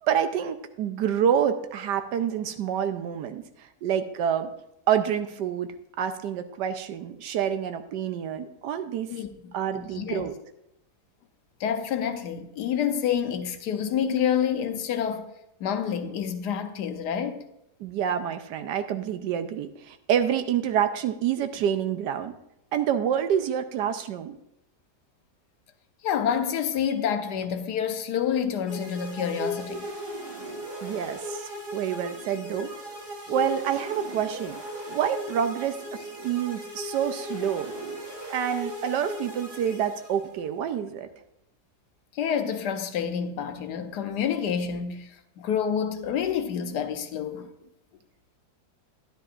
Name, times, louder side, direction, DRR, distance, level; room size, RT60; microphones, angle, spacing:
voice 1, 0.0-3.5 3.8-4.5 4.9-9.1 9.5-10.3 17.8-22.3 22.7-24.4 30.8-32.7 33.3-34.6 34.9-37.7 38.3-41.1, right 9 dB, 85° right, 1.3 m, -27 dB
voice 2, 9.1-10.3 11.6-15.3 15.6-17.4 26.0-29.8 42.1-47.5, left 8 dB, 75° left, 1.3 m, -28 dB
sound 1, 28.7-40.5, equal, 70° right, 4.0 m, -37 dB
12.5 x 10.5 x 2.5 m
omnidirectional pair, 1.8 m